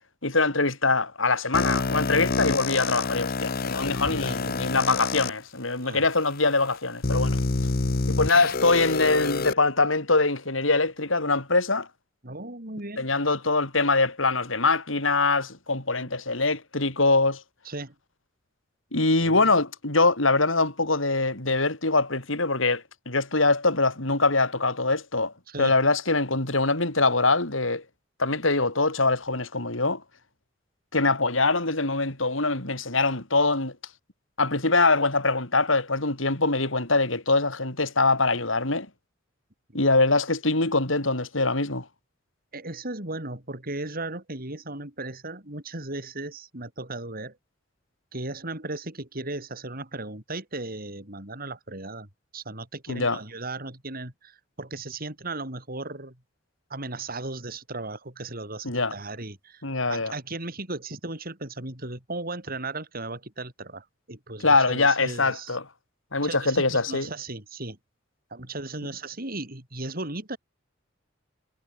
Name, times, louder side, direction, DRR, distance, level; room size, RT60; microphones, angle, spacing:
voice 1, 0.2-7.4 8.1-11.9 13.0-17.4 18.9-25.3 25.6-27.8 28.2-30.0 30.9-33.7 34.4-38.9 39.7-41.9 52.9-53.2 58.6-58.9 59.6-60.1 64.4-65.6 66.1-67.1, left 3 dB, 85° left, 5.5 m, -23 dB
sound 1, 1.5-5.3 6.0-6.1 7.0-9.5, left 3 dB, 50° left, 0.9 m, -27 dB
voice 2, 4.0-4.8 5.8-6.0 8.3-8.5 12.2-13.1 17.6-17.9 19.2-19.5 25.5-25.7 42.5-47.4 48.1-56.2 56.7-59.6 59.9-65.6 66.2-67.8 68.3-70.4, right 2 dB, 50° right, 6.4 m, -36 dB
head